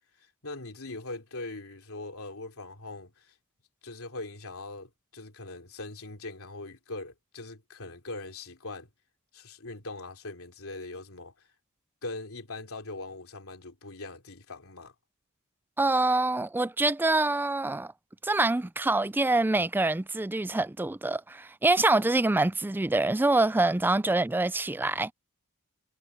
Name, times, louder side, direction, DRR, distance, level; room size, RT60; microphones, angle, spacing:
voice 1, 0.2-3.3 3.8-8.9 9.3-11.5 12.0-14.9, left 2 dB, 70° left, 3.7 m, -41 dB
voice 2, 15.8-17.9 18.2-25.1, right 2 dB, 10° right, 0.3 m, -25 dB
head